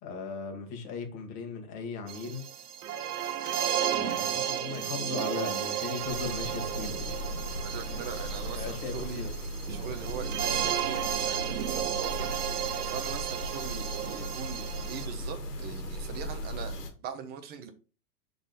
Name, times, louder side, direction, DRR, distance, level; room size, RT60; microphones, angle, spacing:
voice 1, 0.0-2.4 3.9-7.7 8.6-9.3, left 4 dB, 35° left, 1.7 m, -38 dB
sound 1, 2.1-15.1, right 10 dB, 75° right, 0.8 m, -33 dB
sound 2, 6.1-16.9, equal, 85° left, 1.8 m, -37 dB
voice 2, 7.6-9.2 9.7-17.7, right 7 dB, 20° right, 0.6 m, -41 dB
6.0 x 3.9 x 4.0 m
hypercardioid pair, 125°, 46 cm